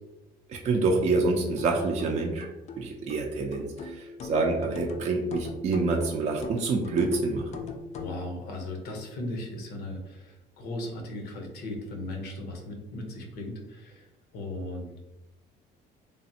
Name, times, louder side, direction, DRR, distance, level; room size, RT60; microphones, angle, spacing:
voice 1, 0.5-2.5 2.8-7.5, right 3 dB, 40° right, 1 dB, 0.4 m, -27 dB
sound 1, 1.6-8.2, left 4 dB, 45° left, 0.4 m, -41 dB
voice 2, 8.0-14.1 14.3-14.9, left 1 dB, 70° left, 2 dB, 0.7 m, -37 dB
3.3 x 2.0 x 2.6 m, 0.99 s
cardioid pair, 110°, 17 cm